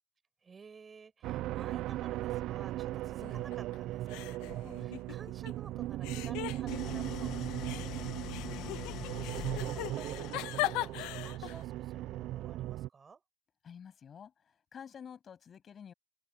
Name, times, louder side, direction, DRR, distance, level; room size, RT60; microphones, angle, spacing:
voice 1, 0.4-13.2, right 5 dB, 20° right, 5.0 m, -54 dB
sound 1, 1.2-12.9, right 15 dB, 50° right, 0.4 m, -38 dB
sound 2, 3.2-3.8 4.1-5.5 6.0-7.2 7.6-11.6, left 19 dB, 75° left, 1.1 m, -39 dB
Idling, 6.7-10.9, left 14 dB, 55° left, 1.2 m, -43 dB
voice 2, 13.6-15.9, left 7 dB, 30° left, 7.9 m, -50 dB
open air
cardioid pair, 160°, 0 cm